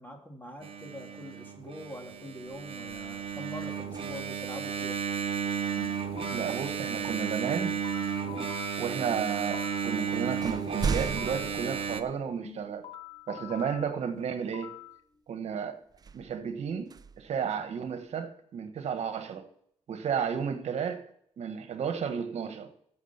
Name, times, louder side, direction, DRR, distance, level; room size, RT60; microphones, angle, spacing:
voice 1, 0.0-5.0 8.3-8.5, equal, 15° left, 3.1 m, -44 dB
Engine, 0.6-12.0, right 7 dB, 50° right, 1.1 m, -33 dB
sound 1, 3.8-4.5 6.7-6.9 7.7-8.4 9.3-9.4 9.8-12.7 13.2-13.3 15.9-18.1, right 5 dB, 35° right, 0.5 m, -38 dB
sound 2, 6.2-6.6 7.4-10.0 10.8-11.6 12.4-15.0, left 11 dB, 50° left, 1.1 m, -46 dB
voice 2, 6.3-7.8 8.8-12.8 13.3-14.7 15.3-15.8 16.1-19.5 19.9-21.1 21.4-22.7, right 7 dB, 65° right, 1.5 m, -33 dB
14.5 x 6.3 x 6.0 m
cardioid pair, 85°, 12 cm